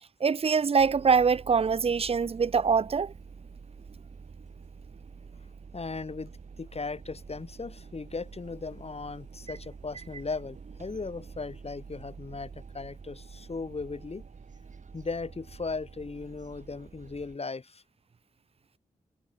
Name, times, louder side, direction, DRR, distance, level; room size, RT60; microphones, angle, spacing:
voice 1, 0.2-3.1, right 5 dB, 45° right, 0.6 m, -24 dB
sound 1, 0.8-17.4, right 5 dB, 60° right, 5.0 m, -48 dB
voice 2, 5.7-6.3 6.6-14.2 14.9-17.8, left 4 dB, 45° left, 5.8 m, -37 dB
cardioid pair, 65°, 14 cm